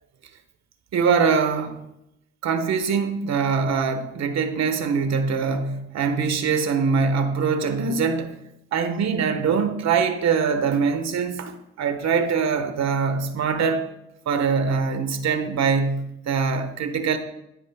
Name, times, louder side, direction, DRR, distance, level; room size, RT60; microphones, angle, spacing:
voice 1, 0.9-1.8 2.4-8.4 8.7-13.8 14.3-17.2, right 5 dB, 60° right, 8 dB, 0.9 m, -23 dB
11.0 x 5.1 x 3.4 m, 0.84 s
cardioid pair, 90°, 30 cm